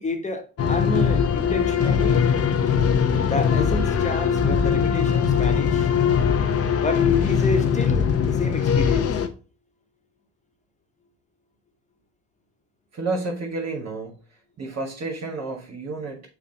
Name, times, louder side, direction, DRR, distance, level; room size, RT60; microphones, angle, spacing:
voice 1, 0.0-2.2 3.2-5.9 6.8-9.2, left 2 dB, 25° left, 1.4 m, -30 dB
sound 1, 0.6-9.3, left 7 dB, 50° left, 0.8 m, -21 dB
voice 2, 12.9-14.2 14.6-16.2, right 3 dB, 55° right, 1.9 m, -30 dB
6.8 x 2.7 x 5.4 m
cardioid pair, 90°, 30 cm